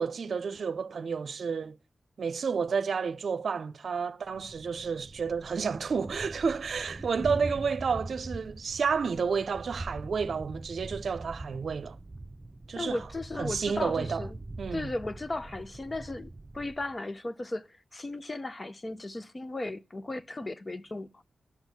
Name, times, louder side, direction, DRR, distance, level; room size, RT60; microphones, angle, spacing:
voice 1, 0.0-1.8 2.2-12.0 12.7-13.0 13.4-14.3 14.6-14.9, right 5 dB, 75° right, 0.6 m, -30 dB
Thunder, 4.3-17.0, right 2 dB, 25° right, 0.7 m, -43 dB
voice 2, 12.8-14.4 14.7-21.2, left 2 dB, 35° left, 0.8 m, -36 dB
11.0 x 6.3 x 8.3 m
cardioid pair, 60°, 0 cm